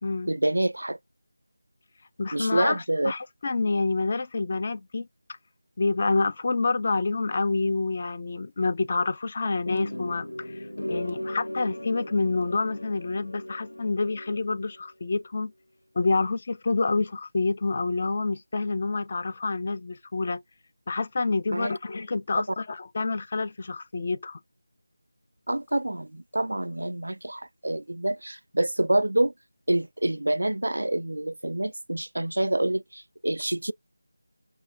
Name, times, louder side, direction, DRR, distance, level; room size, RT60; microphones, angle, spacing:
voice 1, 0.3-1.0 2.3-3.1 21.5-21.7 25.5-29.3 29.7-33.7, right 1 dB, 75° right, 0.3 m, -27 dB
voice 2, 2.2-5.1 5.8-15.5 16.0-20.4 20.9-24.4, left 3 dB, 35° left, 0.4 m, -28 dB
sound 1, 9.7-14.8, left 1 dB, 85° left, 0.7 m, -37 dB
5.4 x 2.2 x 2.6 m
figure-of-eight pair, 170°, 0 cm